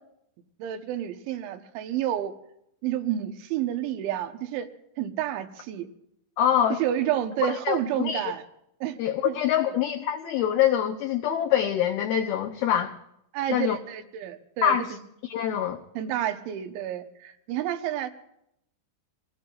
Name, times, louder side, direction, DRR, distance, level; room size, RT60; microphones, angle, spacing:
voice 1, 0.6-2.3 2.8-4.7 5.0-5.9 6.8-8.4 8.8-9.0 9.3-9.4 9.6-9.7 13.3-15.0 16.0-18.1, right 11 dB, 80° right, 6 dB, 3.5 m, -30 dB
voice 2, 6.4-6.8 7.4-8.2 9.0-12.9 13.5-13.8 14.6-15.0 15.2-15.8, left 10 dB, 80° left, 4 dB, 2.3 m, -25 dB
26.5 x 19.5 x 2.5 m, 0.77 s
omnidirectional pair, 5.4 m